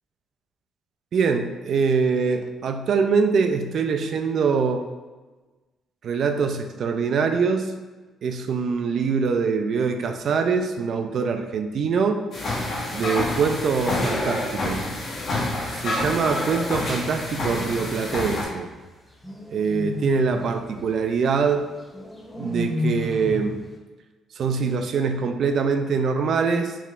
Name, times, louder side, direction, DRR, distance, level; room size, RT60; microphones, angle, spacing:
voice 1, 1.1-4.8 6.0-7.7 8.2-12.2 12.9-14.8 15.7-18.7 19.5-21.7 22.3-23.6 24.4-26.8, right 5 dB, 60° right, 7 dB, 0.4 m, -23 dB
sound 1, 12.3-18.4, left 2 dB, 55° left, 1.5 m, -28 dB
sound 2, 17.1-17.9 19.2-20.5 21.9-23.5, left 2 dB, 10° left, 0.8 m, -31 dB
4.7 x 3.4 x 2.4 m, 1.2 s
cardioid pair, 90°, 0 cm